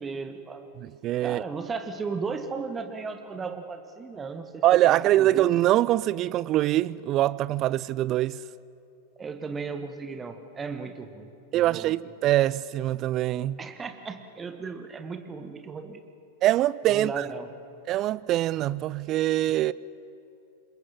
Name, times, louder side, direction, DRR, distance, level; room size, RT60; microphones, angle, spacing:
voice 1, 0.0-0.7 1.2-5.5 9.2-12.1 13.6-16.0 16.8-17.5, right 4 dB, 15° right, 1.7 m, -36 dB
voice 2, 0.8-1.4 4.6-8.4 11.5-13.6 16.4-17.3 17.9-19.7, right 14 dB, 35° right, 0.5 m, -23 dB
27.0 x 21.5 x 7.4 m
figure-of-eight pair, 90°, 0 cm